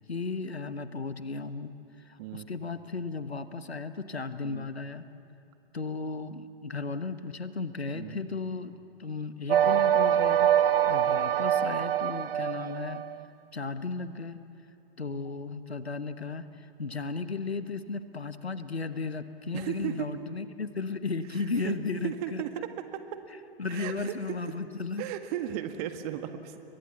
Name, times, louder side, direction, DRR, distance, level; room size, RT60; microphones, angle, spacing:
voice 1, 0.1-1.7 2.0-5.0 5.7-10.5 10.9-13.1 13.5-14.4 15.0-22.4 23.6-25.0, left 4 dB, 85° left, 12 dB, 1.3 m, -35 dB
sound 1, 9.5-13.2, right 10 dB, 65° right, 0.7 m, -24 dB
voice 2, 19.5-20.1 21.6-21.8 22.0-22.7 23.7-24.4 25.0-26.6, right 11 dB, 40° right, 8 dB, 1.8 m, -35 dB
29.5 x 23.0 x 7.2 m, 2.8 s
figure-of-eight pair, 105°, 31 cm